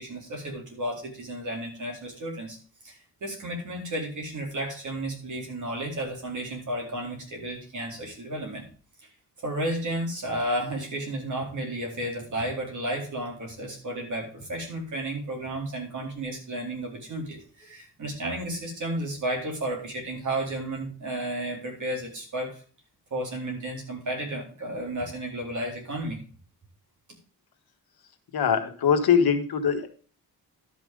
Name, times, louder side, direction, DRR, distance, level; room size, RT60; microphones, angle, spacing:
voice 1, 0.0-2.6 2.8-8.6 9.4-22.6 23.1-26.2, right 1 dB, 50° right, 0 dB, 4.2 m, -32 dB
voice 2, 28.3-29.9, left 7 dB, 70° left, 6 dB, 1.6 m, -22 dB
12.0 x 6.0 x 5.1 m, 0.40 s
wide cardioid pair, 170°, 38 cm